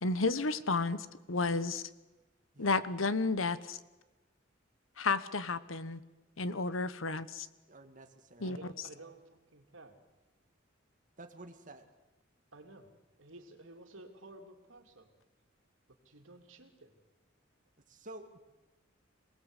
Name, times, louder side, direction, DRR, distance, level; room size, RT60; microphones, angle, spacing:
voice 1, 0.0-1.8 2.6-3.8 5.0-6.0 6.4-7.5 8.4-8.6, left 3 dB, 85° left, 14 dB, 1.2 m, -32 dB
voice 2, 7.7-8.5 11.2-11.9 17.9-18.4, right 2 dB, 40° right, 5 dB, 2.2 m, -50 dB
voice 3, 8.4-9.2 9.5-9.9 12.5-12.9 13.2-15.1 16.0-16.9, right 2 dB, 80° right, 4 dB, 3.3 m, -52 dB
27.0 x 19.5 x 8.3 m, 1.1 s
head